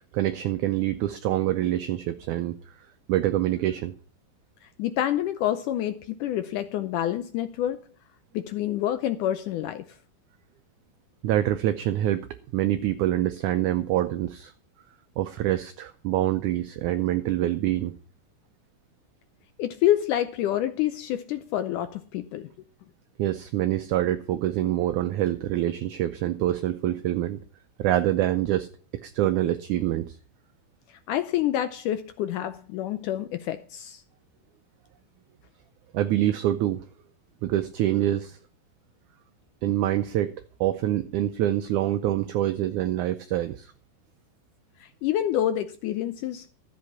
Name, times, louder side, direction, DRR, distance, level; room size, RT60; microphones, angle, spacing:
voice 1, 0.1-2.6 3.1-3.9 11.2-12.3 12.5-14.5 15.2-18.0 23.2-27.4 27.8-28.7 29.0-30.2 35.9-36.9 37.4-38.4 39.6-40.3 40.6-43.7, right 13 dB, 80° right, 1.8 m, -25 dB
voice 2, 4.8-7.9 8.3-9.9 19.6-22.5 30.9-34.0 44.8-46.5, left 12 dB, 80° left, 1.9 m, -27 dB
13.5 x 8.1 x 5.6 m
omnidirectional pair, 4.3 m